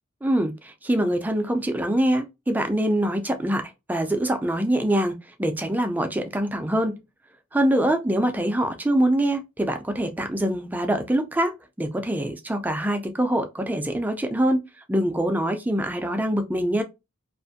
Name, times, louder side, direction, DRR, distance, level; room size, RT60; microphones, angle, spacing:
voice 1, 0.2-3.6 3.9-5.1 5.4-7.0 7.5-14.6 14.9-16.8, right 1 dB, 10° right, 0.3 m, -24 dB
2.5 x 2.4 x 2.5 m
head